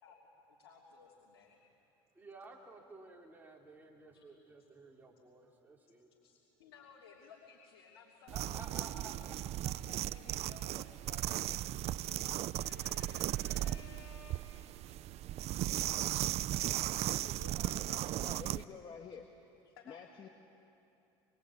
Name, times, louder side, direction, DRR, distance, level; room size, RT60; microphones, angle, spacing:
voice 1, 0.0-1.6 4.1-4.2 6.2-8.6 9.6-14.7 17.4-18.0 19.6-20.2, left 7 dB, 90° left, -2 dB, 3.0 m, -57 dB
voice 2, 2.1-6.1 8.3-9.5 13.2-13.8 16.7-17.7, right 2 dB, 15° right, -2 dB, 5.0 m, -54 dB
sound 1, 8.3-18.6, right 14 dB, 50° right, 0.6 m, -36 dB
voice 3, 18.2-19.3 19.9-20.3, left 6 dB, 40° left, 3 dB, 1.8 m, -49 dB
25.0 x 23.5 x 8.8 m, 2.7 s
supercardioid pair, 85°, 13 cm